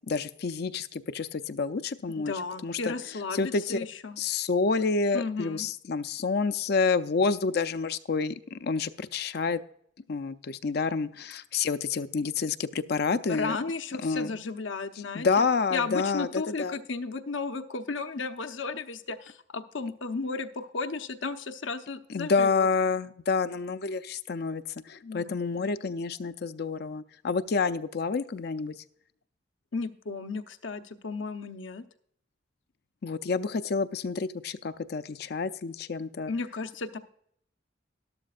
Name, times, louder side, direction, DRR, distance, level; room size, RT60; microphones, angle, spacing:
voice 1, 0.1-2.9 3.3-3.8 4.2-9.6 10.1-13.6 14.0-14.3 15.1-16.8 22.1-28.7 33.0-36.3, left 4 dB, 55° left, 12 dB, 0.5 m, -28 dB
voice 2, 2.2-4.2 5.1-5.7 13.3-15.3 15.7-22.7 25.0-25.3 29.7-31.8 36.3-37.0, left 4 dB, 85° left, 8 dB, 0.9 m, -34 dB
13.0 x 12.0 x 2.4 m, 0.67 s
head